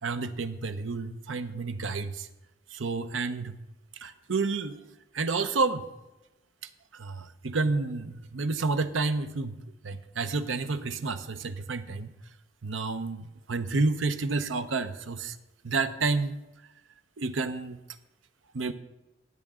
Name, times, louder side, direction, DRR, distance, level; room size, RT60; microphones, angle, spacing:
voice 1, 0.0-2.3 2.7-3.6 3.9-4.8 5.1-5.8 6.9-9.6 9.8-12.1 12.6-15.4 15.6-16.4 17.2-17.8 18.5-18.7, right 3 dB, 90° right, 10 dB, 0.8 m, -30 dB
19.5 x 7.8 x 3.7 m, 0.99 s
head